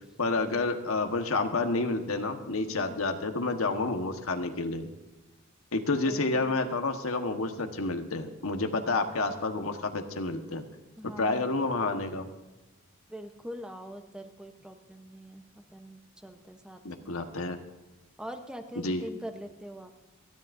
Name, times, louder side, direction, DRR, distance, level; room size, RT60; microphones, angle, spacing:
voice 1, 0.2-4.9 5.7-10.6 11.2-12.3 16.8-17.6 18.8-19.0, left 3 dB, 85° left, 5 dB, 1.4 m, -29 dB
voice 2, 2.7-3.0 6.1-6.6 11.0-11.7 13.1-15.4 15.7-17.2 18.2-20.0, equal, 5° right, 5 dB, 0.9 m, -43 dB
30.0 x 10.5 x 2.7 m, 1.1 s
head